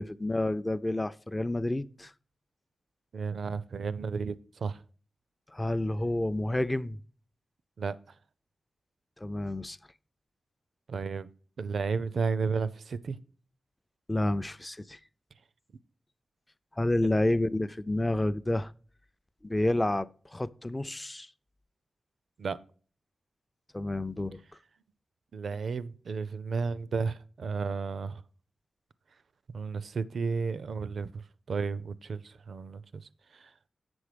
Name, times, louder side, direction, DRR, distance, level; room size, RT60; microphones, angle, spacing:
voice 1, 0.0-2.1 5.5-7.0 9.2-9.8 14.1-15.0 16.8-18.7 19.4-21.3 23.7-24.4, left 1 dB, 20° left, 0.4 m, -29 dB
voice 2, 3.1-4.8 7.8-8.0 10.9-11.3 11.6-13.2 17.0-17.2 22.4-22.6 25.3-28.2 29.5-31.2 31.5-33.5, right 5 dB, 75° right, 0.4 m, -33 dB
7.9 x 6.1 x 5.0 m
cardioid pair, 75°, 0 cm